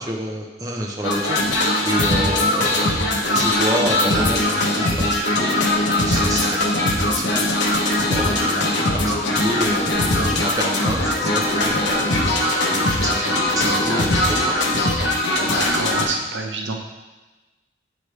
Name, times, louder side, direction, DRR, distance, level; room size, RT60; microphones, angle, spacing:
voice 1, 0.0-14.6, equal, 20° right, -1 dB, 0.7 m, -29 dB
sound 1, 1.0-16.0, left 1 dB, 80° left, 0.9 m, -20 dB
Wind instrument woodwind instrument, 11.2-15.1, left 1 dB, ahead, 1.4 m, -32 dB
voice 2, 15.5-16.7, right 3 dB, 75° right, 1 dB, 0.8 m, -28 dB
8.0 x 4.8 x 3.3 m, 1.2 s
head